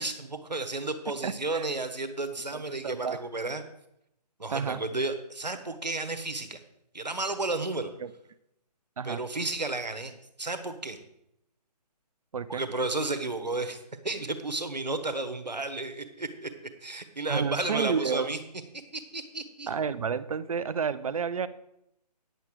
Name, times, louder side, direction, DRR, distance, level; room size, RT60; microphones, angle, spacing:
voice 1, 0.0-3.6 4.4-6.6 6.9-7.9 9.0-10.1 10.4-11.0 12.5-18.4 18.7-19.7, right 2 dB, 90° right, 9 dB, 1.4 m, -32 dB
voice 2, 1.2-1.6 2.5-3.2 4.5-4.8 8.0-8.1 9.0-9.2 12.3-12.6 17.3-18.3 19.7-21.5, right 6 dB, 55° right, 15 dB, 0.7 m, -30 dB
10.5 x 8.3 x 4.8 m, 0.81 s
figure-of-eight pair, 145°, 21 cm